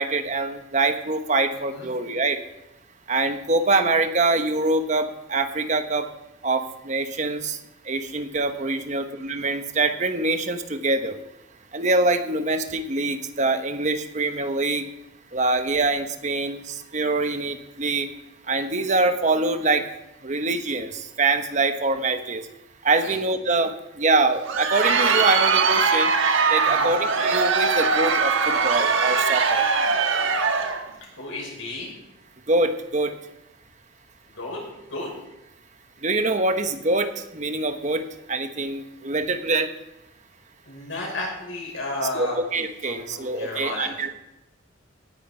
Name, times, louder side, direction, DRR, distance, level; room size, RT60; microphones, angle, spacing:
voice 1, 0.0-2.4 3.1-6.1 6.4-7.6 7.9-11.2 11.7-14.9 15.3-18.1 18.5-19.9 20.2-22.4 22.8-23.7 24.0-26.1 26.5-29.6 32.5-33.1 36.0-38.0 38.3-39.7 42.1-44.1, right 3 dB, 35° right, 8 dB, 1.1 m, -24 dB
Crowd, 24.3-30.9, right 5 dB, 75° right, 1.4 m, -21 dB
voice 2, 31.2-31.9 34.3-34.6 34.9-35.1 40.7-42.4 42.8-44.1, left 2 dB, 75° left, -2 dB, 5.9 m, -33 dB
17.5 x 10.0 x 4.5 m, 0.91 s
head